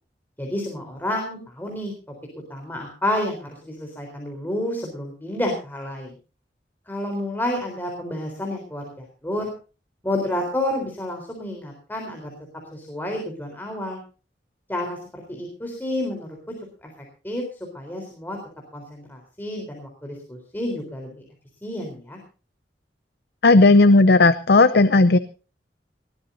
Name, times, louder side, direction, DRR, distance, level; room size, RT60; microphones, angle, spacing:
voice 1, 0.4-1.9 2.5-6.1 6.9-9.5 10.0-12.3 12.7-14.0 14.7-16.4 16.8-16.9 17.2-17.4 17.7-18.4 18.7-21.1 21.6-22.2, left 1 dB, 10° left, 1 dB, 3.9 m, -30 dB
voice 2, 23.4-25.2, left 2 dB, 65° left, 12 dB, 0.7 m, -14 dB
20.5 x 17.5 x 2.7 m, 0.35 s
head